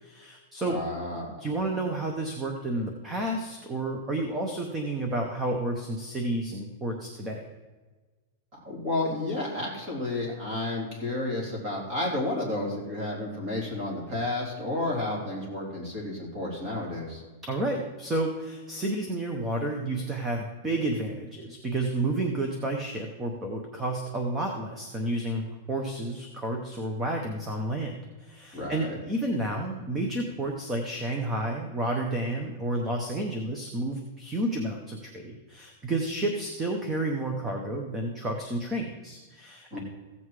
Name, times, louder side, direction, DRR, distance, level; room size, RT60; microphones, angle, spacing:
voice 1, 0.0-0.8 1.4-7.5 17.4-39.8, right 1 dB, 10° right, 3 dB, 0.8 m, -31 dB
voice 2, 0.7-1.4 8.7-17.2 28.5-29.0 39.7-39.8, left 2 dB, 25° right, -2 dB, 3.5 m, -31 dB
15.5 x 7.7 x 4.8 m, 1.3 s
supercardioid pair, 180°, 0 cm